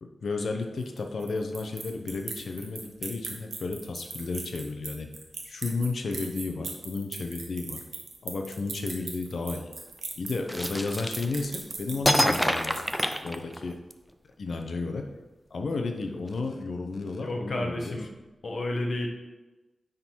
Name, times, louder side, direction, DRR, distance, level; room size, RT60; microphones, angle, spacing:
voice 1, 0.0-5.1 5.4-7.8 8.2-9.7 10.2-12.9 13.2-13.8 14.4-15.1 15.5-18.0, left 3 dB, 70° left, 4 dB, 0.8 m, -32 dB
sound 1, 0.8-13.4, right 4 dB, 75° right, 1.1 m, -39 dB
sound 2, 10.5-11.6 12.0-13.9, equal, 5° left, 0.4 m, -26 dB
voice 2, 17.2-18.1 18.4-19.1, left 1 dB, 50° left, 1 dB, 1.2 m, -31 dB
9.7 x 3.9 x 4.6 m, 1.1 s
wide cardioid pair, 125°, 0 cm